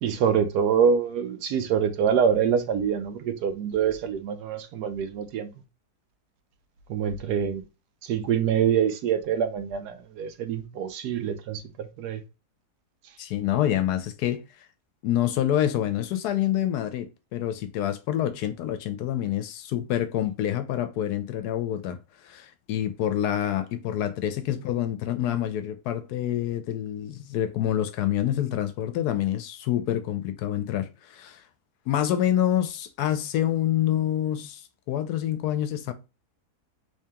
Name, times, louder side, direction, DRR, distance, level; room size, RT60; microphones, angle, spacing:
voice 1, 0.0-5.5 6.9-7.6 8.0-12.2, right 7 dB, 85° right, 1.2 m, -25 dB
voice 2, 13.2-14.4 15.0-31.4 31.9-35.9, left 11 dB, 80° left, 1.1 m, -27 dB
3.2 x 2.8 x 3.4 m
omnidirectional pair, 1.7 m